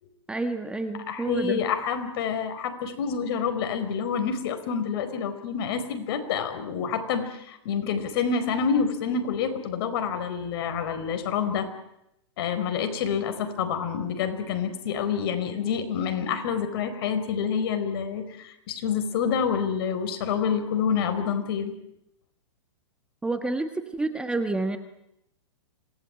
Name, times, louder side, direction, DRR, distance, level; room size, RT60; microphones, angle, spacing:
voice 1, 0.3-1.6 23.2-24.8, right 2 dB, 5° right, 7 dB, 1.5 m, -29 dB
voice 2, 1.1-11.7 12.4-21.7, left 6 dB, 50° left, 8 dB, 4.8 m, -28 dB
26.5 x 19.5 x 8.9 m, 0.80 s
hypercardioid pair, 135°, 15 cm